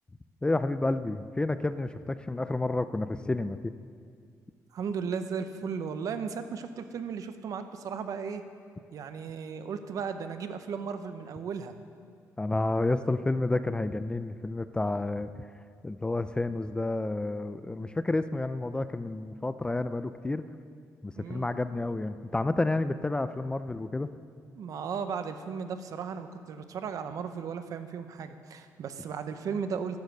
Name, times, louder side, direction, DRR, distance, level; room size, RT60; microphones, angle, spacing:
voice 1, 0.4-3.7 12.4-15.3 15.8-20.4 21.0-24.1, left 2 dB, 15° left, 12 dB, 0.3 m, -30 dB
voice 2, 4.7-8.4 8.9-11.7 21.2-21.5 24.5-30.0, right 6 dB, 60° right, 9 dB, 0.7 m, -35 dB
10.5 x 7.2 x 6.6 m, 2.2 s
cardioid pair, 115°, 7 cm